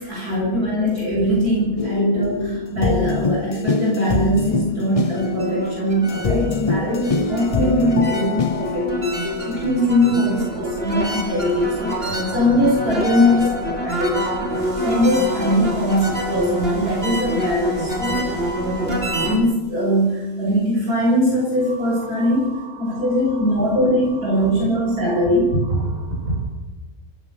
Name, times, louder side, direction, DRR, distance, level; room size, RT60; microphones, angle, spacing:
voice 1, 0.0-22.5 22.8-25.5, equal, 85° right, -3 dB, 8.1 m, -21 dB
sound 1, 1.8-9.7, left 4 dB, 40° left, 0.5 m, -25 dB
sound 2, 4.9-19.4, equal, 40° right, 3.4 m, -26 dB
voice 2, 21.6-26.4, right 2 dB, 60° right, -2 dB, 8.6 m, -30 dB
26.0 x 15.5 x 6.5 m, 1.1 s
omnidirectional pair, 1.6 m